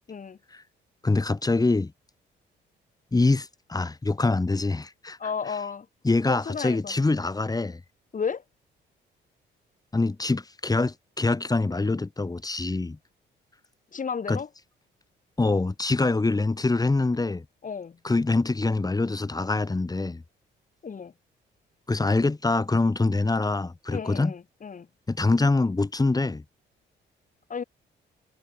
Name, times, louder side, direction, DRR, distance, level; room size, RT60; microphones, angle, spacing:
voice 1, 1.0-1.9 3.1-5.2 6.0-7.8 9.9-13.0 14.3-14.4 15.4-17.4 18.0-20.2 21.9-24.3 25.1-26.4, left 3 dB, 20° left, 3.1 m, -24 dB
voice 2, 5.2-5.9 6.3-6.9 8.1-8.4 13.9-14.5 17.6-18.0 20.8-21.1 23.9-24.9 27.5-27.6, left 6 dB, 40° left, 4.9 m, -33 dB
cardioid pair, 90°, 20 cm